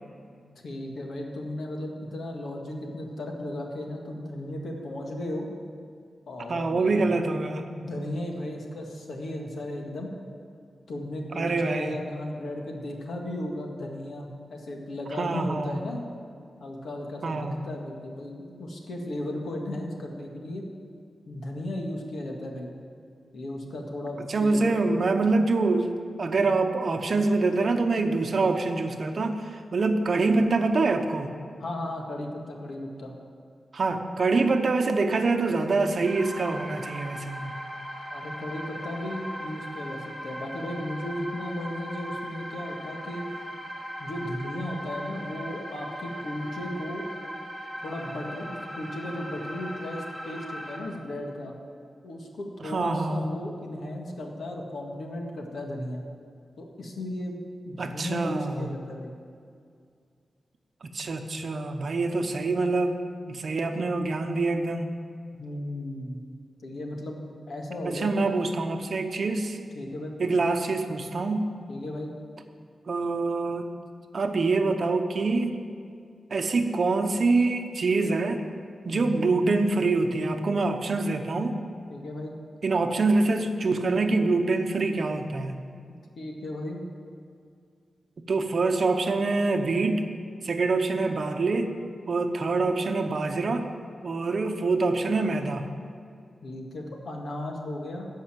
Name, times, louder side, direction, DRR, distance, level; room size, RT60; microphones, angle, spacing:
voice 1, 0.6-5.5 6.3-7.3 7.7-10.1 10.9-16.0 16.6-20.7 21.3-22.7 23.3-24.8 31.6-33.1 38.1-43.2 44.0-47.0 47.8-51.5 52.0-56.0 56.6-57.4 57.7-59.1 65.3-66.2 66.6-67.2 67.5-68.1 69.7-70.6 71.7-72.1 78.9-79.2 81.9-82.4 86.2-86.8 96.4-98.1, left 1 dB, 70° left, 1 dB, 1.8 m, -35 dB
voice 2, 6.5-7.6 11.3-12.0 15.2-15.8 17.2-17.6 24.3-31.3 33.7-37.5 52.6-53.2 57.8-58.7 60.8-64.9 67.8-69.6 70.2-71.6 72.9-73.7 74.1-75.5 76.3-78.4 78.8-81.6 82.6-85.6 88.3-90.1 90.4-91.7 92.1-93.7 94.0-95.7, right 3 dB, 50° right, 6 dB, 0.8 m, -25 dB
sound 1, 36.0-50.8, equal, 5° left, 2.6 m, -39 dB
13.5 x 5.6 x 9.0 m, 2.3 s
wide cardioid pair, 150°, 0 cm